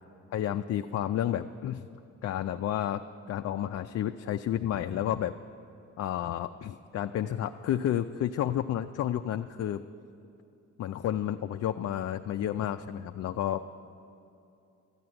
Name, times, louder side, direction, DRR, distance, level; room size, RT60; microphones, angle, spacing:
voice 1, 0.3-1.9 2.2-3.0 3.3-5.3 6.0-9.8 10.8-13.6, left 11 dB, 55° left, 6 dB, 0.5 m, -31 dB
13.0 x 9.4 x 8.8 m, 2.7 s
cardioid pair, 90°, 30 cm